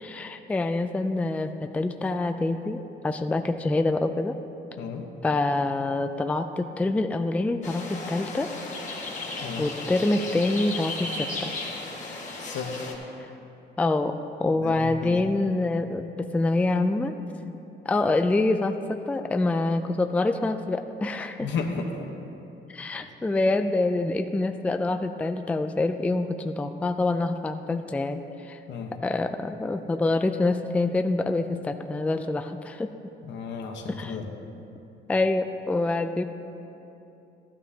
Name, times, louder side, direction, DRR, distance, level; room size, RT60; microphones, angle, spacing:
voice 1, 0.0-4.4 5.2-8.5 9.6-11.5 13.8-17.1 17.8-21.5 22.7-28.6 29.0-33.1 33.9-34.2 35.1-36.2, left 2 dB, 5° left, 8 dB, 0.3 m, -26 dB
sound 1, 7.6-12.9, left 2 dB, 40° left, 1.6 m, -35 dB
voice 2, 14.5-15.2 21.4-22.1 28.7-28.9 33.2-34.3, left 5 dB, 75° left, 3 dB, 1.1 m, -33 dB
13.0 x 12.5 x 2.8 m, 2.8 s
cardioid pair, 120°, 19 cm